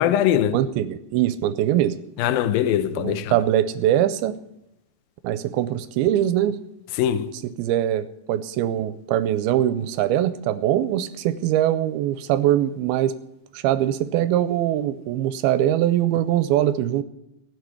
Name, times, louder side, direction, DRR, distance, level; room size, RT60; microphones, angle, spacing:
voice 1, 0.0-0.6 2.2-3.4 6.9-7.3, left 10 dB, 80° left, 2.5 m, -21 dB
voice 2, 0.5-2.0 3.0-4.4 5.2-6.6 7.6-13.1 13.5-17.0, right 12 dB, 85° right, 2.5 m, -22 dB
16.0 x 6.5 x 9.7 m
omnidirectional pair, 4.4 m